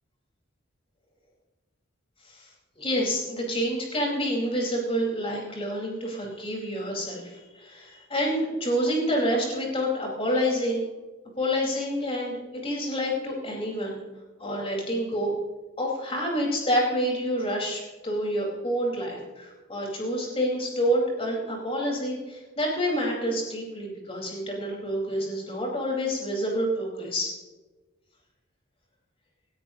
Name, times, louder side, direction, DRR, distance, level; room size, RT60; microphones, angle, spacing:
voice 1, 2.7-10.8 11.4-14.0 14.4-15.3 15.8-27.3, equal, 30° left, -2 dB, 4.6 m, -28 dB
19.0 x 13.5 x 2.9 m, 1.2 s
head